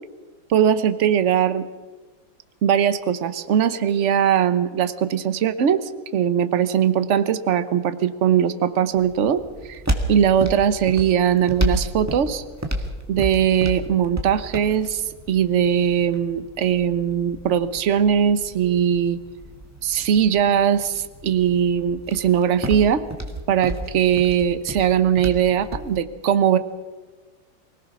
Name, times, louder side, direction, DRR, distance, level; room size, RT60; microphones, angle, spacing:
voice 1, 0.5-1.7 2.6-9.8 10.1-12.4 13.1-15.0 15.3-19.2 19.8-23.0 23.5-26.6, right 9 dB, 50° right, 12 dB, 1.0 m, -20 dB
sound 1, 8.9-26.0, equal, 10° right, 1.6 m, -32 dB
24.0 x 18.0 x 6.0 m, 1.3 s
omnidirectional pair, 2.1 m